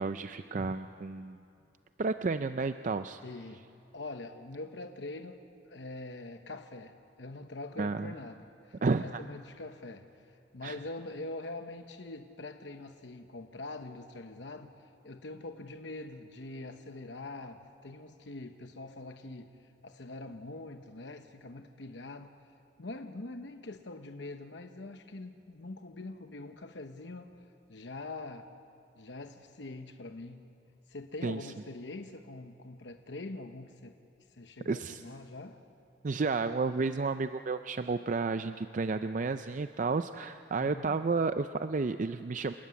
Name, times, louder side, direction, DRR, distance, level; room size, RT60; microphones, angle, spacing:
voice 1, 0.0-1.4 2.0-3.2 7.8-8.1 8.8-9.2 10.6-10.8 31.2-31.4 34.7-35.0 36.0-42.5, right 4 dB, 45° right, 10 dB, 0.4 m, -31 dB
voice 2, 3.2-3.7 3.9-5.4 5.6-22.3 22.8-28.5 28.9-30.4 30.9-33.9 34.3-35.6 40.6-41.0, left 2 dB, 70° left, 6 dB, 1.0 m, -44 dB
29.0 x 13.5 x 9.6 m, 2.7 s
head